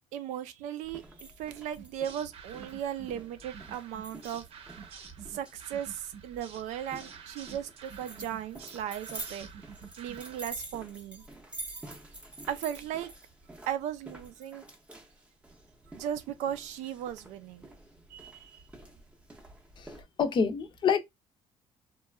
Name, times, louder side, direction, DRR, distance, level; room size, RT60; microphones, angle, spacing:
voice 1, 0.1-4.4 5.3-9.5 10.0-11.2 12.5-13.1 13.7-14.6 15.9-17.7 18.1-18.6, right 10 dB, 90° right, 0.4 m, -37 dB
sound 1, 0.8-20.0, right 2 dB, 10° right, 0.6 m, -48 dB
sound 2, 1.8-10.5, right 7 dB, 55° right, 0.7 m, -49 dB
voice 2, 19.8-21.0, left 6 dB, 40° left, 0.5 m, -27 dB
2.9 x 2.3 x 2.2 m
cardioid pair, 130°, 12 cm